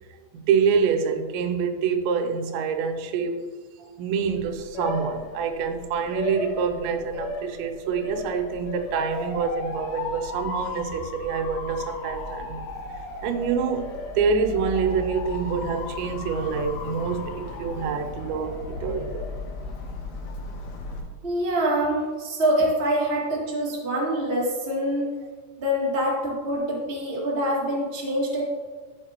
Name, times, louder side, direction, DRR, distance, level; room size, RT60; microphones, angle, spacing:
voice 1, 0.3-3.5 4.0-12.6 13.2-19.3, right 6 dB, 85° right, 3.1 m, -26 dB
Motor vehicle (road) / Siren, 4.2-21.0, left 3 dB, 80° left, 3.5 m, -35 dB
voice 2, 21.2-25.0 25.6-28.4, equal, 20° right, 1.6 m, -25 dB
13.0 x 7.2 x 3.0 m
omnidirectional pair, 5.0 m